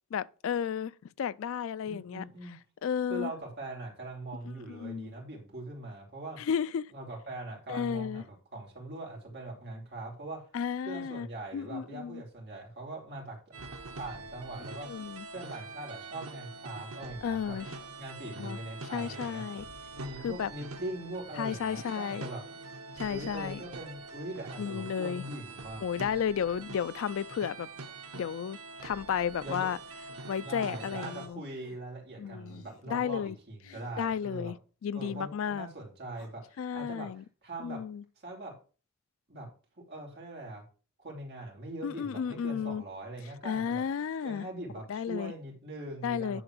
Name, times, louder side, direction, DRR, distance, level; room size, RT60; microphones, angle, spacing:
voice 1, 0.1-0.9 1.2-2.2 2.8-3.3 4.4-5.1 6.4-6.9 7.7-8.2 10.5-11.3 11.5-12.2 14.8-15.3 17.2-17.7 18.4-18.6 18.9-19.7 20.2-20.5 21.4-22.3 23.0-23.6 24.6-25.2 25.8-27.7 28.1-29.8 30.3-31.4 32.2-33.4 33.7-34.6 34.8-35.7 36.6-37.2 37.6-38.0 41.8-42.8 43.4-44.5 44.9-45.3 46.0-46.4, left 7 dB, 65° left, 0.3 m, -33 dB
voice 2, 1.8-2.6 3.1-6.4 6.9-10.4 10.8-13.4 14.0-14.9 15.3-17.6 18.0-19.4 19.9-22.4 23.1-25.8 29.4-29.7 30.4-34.5 34.9-37.1 37.4-37.8 38.2-38.5 39.3-39.5 39.8-40.6 41.0-43.8 44.2-46.4, right 2 dB, 50° right, 3.1 m, -41 dB
sound 1, 13.5-31.3, right 3 dB, 85° right, 1.1 m, -44 dB
sound 2, 29.7-29.9 30.4-30.8 31.4-31.8 32.4-32.9 33.6-34.2 36.1-36.3, left 2 dB, 85° left, 3.0 m, -57 dB
10.0 x 3.9 x 6.0 m
head